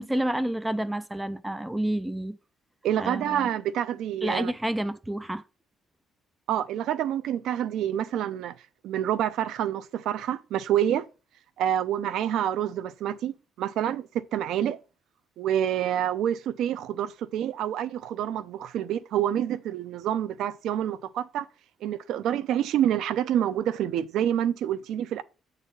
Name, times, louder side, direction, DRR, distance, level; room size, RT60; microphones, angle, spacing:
voice 1, 0.0-2.4 3.0-3.5 4.2-5.4, right 1 dB, 10° right, 0.4 m, -29 dB
voice 2, 2.8-4.5 6.5-8.6 8.8-11.1 11.6-14.8 15.4-21.4 21.8-25.2, right 10 dB, 80° right, 0.6 m, -27 dB
8.1 x 4.1 x 5.4 m
cardioid pair, 125°, 0 cm